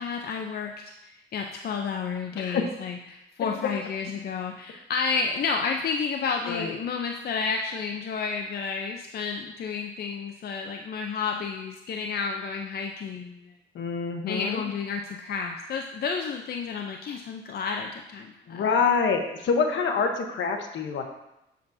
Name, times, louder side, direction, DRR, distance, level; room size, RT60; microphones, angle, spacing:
voice 1, 0.0-13.5 14.3-18.6, left 5 dB, 55° left, 3 dB, 0.6 m, -31 dB
voice 2, 13.7-14.6 18.5-21.0, left 5 dB, 70° left, 4 dB, 1.0 m, -26 dB
7.6 x 7.0 x 2.7 m, 0.88 s
cardioid pair, 90°, 20 cm